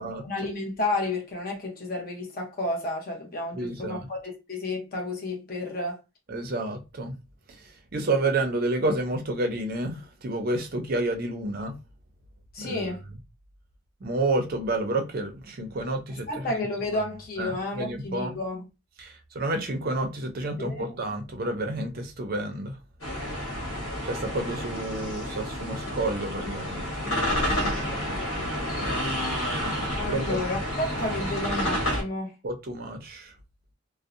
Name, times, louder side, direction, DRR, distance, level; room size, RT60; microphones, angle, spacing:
voice 1, 0.2-6.0 12.5-13.0 16.3-18.7 20.6-20.9 29.9-32.3, left 2 dB, 40° left, 0.7 m, -31 dB
voice 2, 3.5-4.1 6.3-7.2 7.9-11.8 12.6-12.9 14.0-16.6 17.4-18.3 19.0-22.8 24.0-28.2 30.1-30.4 32.4-33.3, right 2 dB, 45° right, 0.5 m, -30 dB
sound 1, 23.0-32.0, equal, 75° left, 1.2 m, -30 dB
2.6 x 2.0 x 2.4 m
head